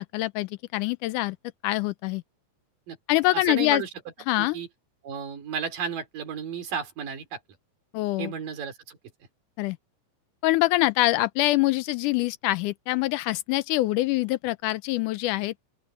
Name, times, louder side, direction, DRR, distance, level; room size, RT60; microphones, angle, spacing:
voice 1, 0.0-1.4 1.6-2.2 3.1-3.8 4.3-4.6 7.9-8.3 9.6-9.8 10.4-15.5, left 18 dB, 80° left, 2.0 m, -25 dB
voice 2, 3.5-3.9 4.4-4.7 5.0-7.4 8.2-9.0, right 6 dB, 75° right, 5.0 m, -33 dB
open air
omnidirectional pair, 3.9 m